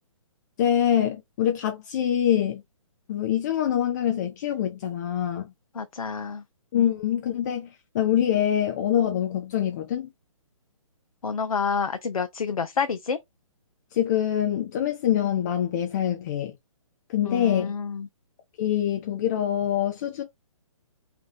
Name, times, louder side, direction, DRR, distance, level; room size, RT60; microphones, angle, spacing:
voice 1, 0.6-2.6 3.1-5.5 6.7-7.7 7.9-10.1 13.9-16.5 17.1-17.7 18.6-20.2, left 10 dB, 30° left, 0.5 m, -25 dB
voice 2, 5.7-6.4 11.2-13.2 17.2-18.1, left 5 dB, 85° left, 0.5 m, -28 dB
2.8 x 2.3 x 3.3 m
hypercardioid pair, 145°, 18 cm